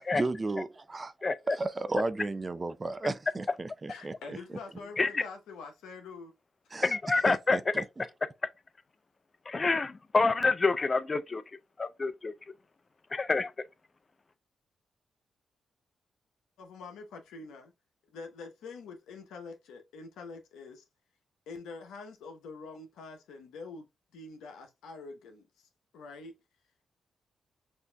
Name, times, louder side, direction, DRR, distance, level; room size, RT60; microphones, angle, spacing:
voice 1, 0.0-1.1 1.5-4.1 6.7-7.0 7.3-8.1, right 2 dB, 35° right, 0.5 m, -34 dB
voice 2, 3.9-6.3 16.6-17.7 18.1-20.8 21.5-25.5 25.9-26.4, left 4 dB, 85° left, 0.8 m, -45 dB
voice 3, 6.8-7.7 9.5-11.4 11.8-12.3 13.1-13.5, left 3 dB, 40° left, 0.5 m, -27 dB
6.2 x 2.6 x 2.2 m
supercardioid pair, 50°, 0 cm